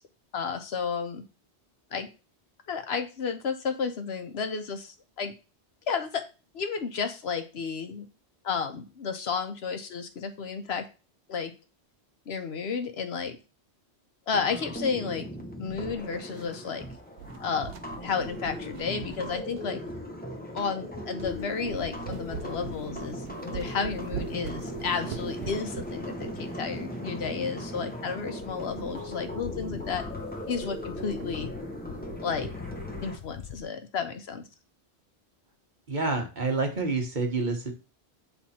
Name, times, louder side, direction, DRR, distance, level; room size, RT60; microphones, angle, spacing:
voice 1, 0.3-1.2 1.9-2.1 2.7-5.3 5.9-6.2 6.5-8.1 8.4-10.8 11.3-11.5 12.3-13.4 14.3-15.3 15.6-16.9 17.4-17.7 18.0-19.8 20.5-30.1 30.5-31.5 32.2-32.5 33.0-34.4, left 5 dB, 70° left, 7 dB, 1.1 m, -32 dB
sound 1, 14.3-33.2, equal, 10° left, 0.9 m, -38 dB
sound 2, 15.7-16.8 17.1-20.1 20.7-20.8 21.2-21.4 21.7-27.8 28.0-28.1 28.4-28.5 28.9-29.1 29.5-29.6 29.9-30.3 30.6-31.5, right 8 dB, 70° right, 0.8 m, -43 dB
sound 3, 21.2-33.6, left 8 dB, 55° left, 0.5 m, -46 dB
voice 2, 35.9-37.7, right 3 dB, 45° right, 3 dB, 1.3 m, -28 dB
7.8 x 3.4 x 4.2 m, 0.32 s
omnidirectional pair, 1.1 m